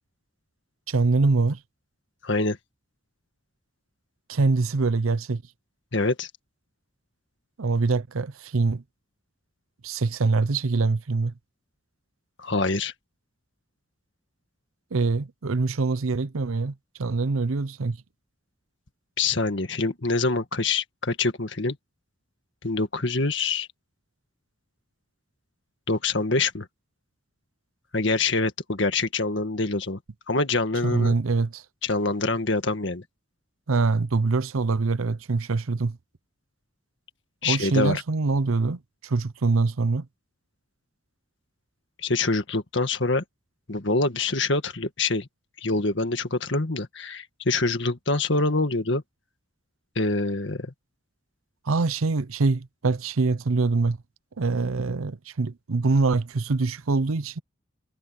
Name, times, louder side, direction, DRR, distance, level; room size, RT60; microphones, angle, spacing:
voice 1, 0.9-1.6 4.3-5.4 7.6-8.8 9.8-11.3 14.9-18.0 30.8-31.6 33.7-36.0 37.4-40.1 51.7-54.0 54.4-57.4, right 3 dB, 90° right, 0.7 m, -24 dB
voice 2, 2.2-2.6 5.9-6.3 12.4-12.9 19.2-21.8 22.6-23.7 25.9-26.7 27.9-30.0 30.3-31.1 31.8-33.0 37.4-38.0 42.0-43.2 43.7-45.3 45.6-49.0 50.0-50.7, left 3 dB, 60° left, 1.9 m, -25 dB
head